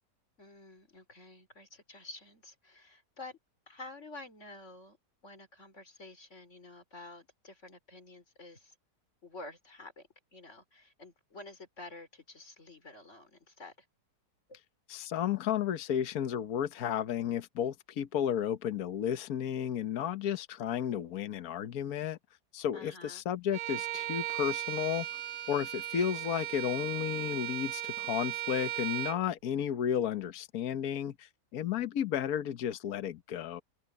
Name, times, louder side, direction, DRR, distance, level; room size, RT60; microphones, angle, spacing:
voice 1, 0.4-3.4 3.7-5.0 5.2-8.8 9.2-13.9 14.5-14.6 22.7-23.2, left 2 dB, 45° left, 4.3 m, -50 dB
voice 2, 14.9-22.2 22.5-25.1 25.5-33.6, left 9 dB, 65° left, 1.4 m, -33 dB
Bowed string instrument, 23.5-29.2, right 14 dB, 65° right, 0.9 m, -37 dB
open air
omnidirectional pair, 1.7 m